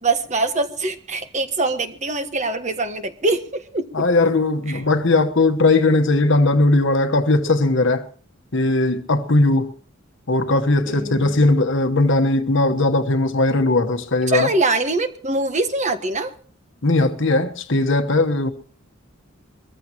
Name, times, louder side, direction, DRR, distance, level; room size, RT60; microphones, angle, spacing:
voice 1, 0.0-3.9 10.9-11.4 14.3-16.3, right 2 dB, 35° right, 1.4 m, -23 dB
voice 2, 3.9-8.0 8.5-9.7 10.3-14.5 16.8-18.5, left 2 dB, 65° left, 1.2 m, -18 dB
23.0 x 14.5 x 3.0 m
head